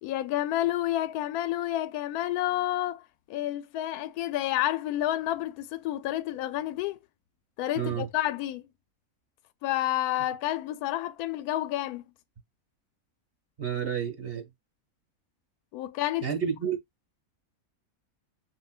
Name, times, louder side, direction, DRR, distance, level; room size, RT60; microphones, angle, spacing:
voice 1, 0.0-7.0 7.6-8.6 9.6-12.0 15.7-16.3, left 14 dB, 80° left, 1.1 m, -30 dB
voice 2, 7.7-8.1 13.6-14.5 16.2-16.8, right 8 dB, 40° right, 1.6 m, -30 dB
6.9 x 2.7 x 2.4 m
omnidirectional pair, 1.6 m